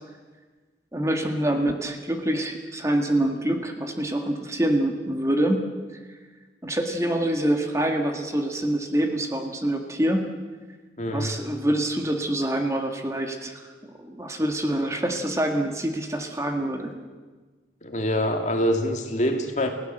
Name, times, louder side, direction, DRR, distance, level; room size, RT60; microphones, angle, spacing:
voice 1, 0.9-5.6 6.6-10.3 11.1-13.7 14.0-16.9, right 1 dB, 15° right, 4 dB, 1.7 m, -25 dB
voice 2, 11.0-11.3 17.8-19.7, equal, 45° left, 4 dB, 2.6 m, -25 dB
29.0 x 17.0 x 7.9 m, 1.4 s
head